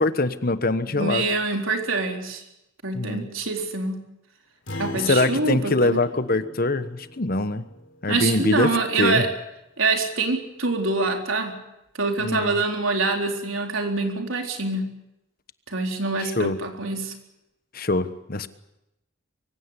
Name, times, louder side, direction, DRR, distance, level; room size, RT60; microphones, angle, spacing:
voice 1, 0.0-1.2 2.9-3.3 4.9-7.7 8.0-8.7 9.0-9.3 12.2-12.6 16.4-16.6 17.7-18.5, left 2 dB, 45° left, 12 dB, 1.1 m, -23 dB
voice 2, 0.9-2.4 2.8-4.0 4.8-6.0 8.1-9.3 9.8-11.6 12.0-14.9 15.7-17.1, right 3 dB, 80° right, 3 dB, 4.0 m, -25 dB
Acoustic guitar, 4.7-9.4, left 1 dB, 65° left, 3.4 m, -39 dB
24.0 x 16.5 x 9.8 m, 0.89 s
head